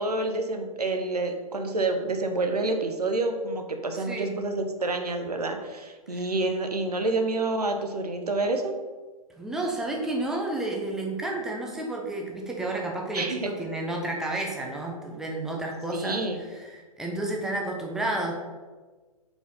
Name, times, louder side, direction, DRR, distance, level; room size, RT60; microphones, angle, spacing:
voice 1, 0.0-8.7 13.1-13.5 15.9-16.4, right 2 dB, 90° right, 5 dB, 0.9 m, -28 dB
voice 2, 3.9-4.3 6.1-6.3 9.4-18.3, right 2 dB, 5° right, -1 dB, 0.7 m, -31 dB
4.7 x 4.1 x 5.3 m, 1.3 s
hypercardioid pair, 130°, 19 cm